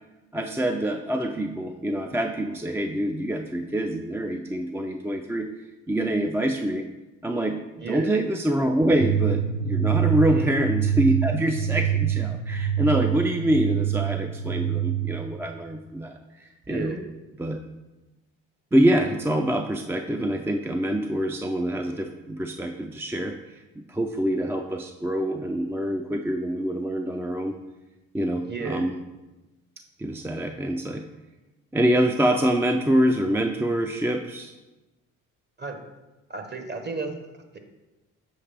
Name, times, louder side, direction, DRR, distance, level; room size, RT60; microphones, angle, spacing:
voice 1, 0.3-5.5 5.9-6.9 7.2-7.6 7.9-16.2 16.7-16.9 17.4-17.6 18.7-27.5 28.1-29.0 30.0-31.0 31.7-34.5, right 1 dB, 5° right, 4 dB, 0.4 m, -25 dB
voice 2, 7.8-8.1 10.3-10.5 16.7-17.0 28.4-28.8 35.6-35.8 36.3-37.1, right 4 dB, 30° right, 5 dB, 1.2 m, -32 dB
sound 1, 9.0-15.1, right 9 dB, 65° right, 1.1 m, -25 dB
7.2 x 4.9 x 3.4 m, 1.1 s
cardioid pair, 85°, 34 cm